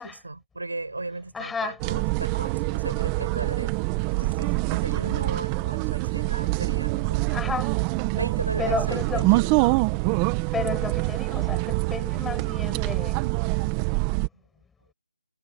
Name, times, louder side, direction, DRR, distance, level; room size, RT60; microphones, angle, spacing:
voice 1, 0.0-3.8 4.1-7.3 8.1-9.5 14.3-14.4, right 2 dB, 85° right, 6.6 m, -36 dB
voice 2, 1.3-1.8 7.3-7.7 8.6-9.3 10.5-13.3, left 5 dB, 5° left, 5.6 m, -32 dB
sound 1, 1.8-14.3, right 24 dB, 15° right, 1.6 m, -25 dB
figure-of-eight pair, 170°, 0 cm